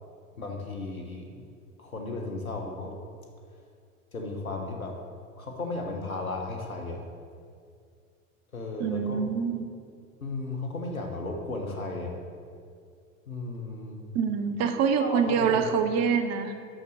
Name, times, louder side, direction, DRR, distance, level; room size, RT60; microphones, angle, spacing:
voice 1, 0.4-1.4 1.8-2.9 4.1-5.0 5.4-7.1 8.5-9.3 10.2-12.1 13.3-14.0 15.0-15.6, left 2 dB, 90° left, 1 dB, 1.2 m, -35 dB
voice 2, 8.8-9.6 14.1-16.5, right 6 dB, 40° right, 8 dB, 0.8 m, -25 dB
6.3 x 6.1 x 6.5 m, 2.3 s
figure-of-eight pair, 75°, 41 cm